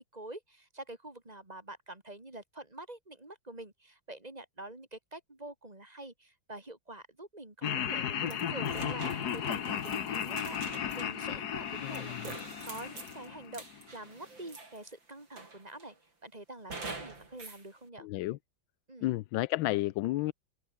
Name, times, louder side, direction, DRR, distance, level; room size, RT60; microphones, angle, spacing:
voice 1, 0.0-12.3 12.7-15.9 16.2-18.1 18.9-19.1, right 2 dB, 20° right, 3.0 m, -46 dB
Laughter, 7.6-13.8, left 9 dB, 60° left, 1.6 m, -35 dB
sound 1, 8.3-14.9 15.4-15.9 16.7-17.6, right 3 dB, 75° right, 5.9 m, -46 dB
voice 2, 11.8-12.2 18.0-18.4 19.0-20.3, left 17 dB, 80° left, 1.4 m, -31 dB
open air
omnidirectional pair, 2.1 m